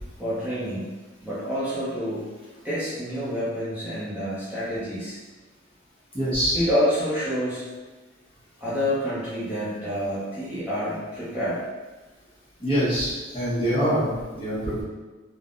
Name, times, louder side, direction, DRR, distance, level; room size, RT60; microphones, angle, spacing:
voice 1, 0.2-0.8 1.2-2.2 2.6-5.2 6.5-7.6 8.6-11.6, equal, 10° right, -12 dB, 0.6 m, -28 dB
voice 2, 6.1-6.6 12.6-14.1 14.4-14.8, equal, 30° left, -10 dB, 1.0 m, -24 dB
3.2 x 2.1 x 2.4 m, 1.2 s
head